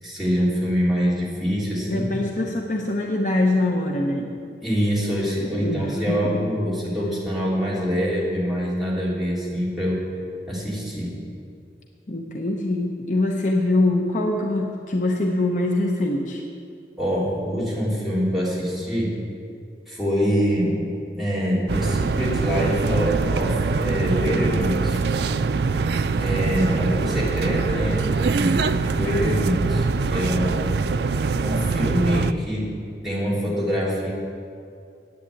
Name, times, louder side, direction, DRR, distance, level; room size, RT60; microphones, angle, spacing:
voice 1, 0.0-2.1 4.6-10.0 10.5-11.2 17.0-19.2 19.9-20.8 21.1-25.0 26.2-30.6 31.4-32.7 33.0-34.1, equal, ahead, -8 dB, 3.2 m, -25 dB
voice 2, 1.9-4.3 5.4-6.5 12.1-16.4, left 2 dB, 45° left, 1 dB, 0.8 m, -23 dB
sound 1, 21.7-32.3, right 4 dB, 70° right, 0.4 m, -23 dB
10.5 x 8.6 x 8.4 m, 2.4 s
head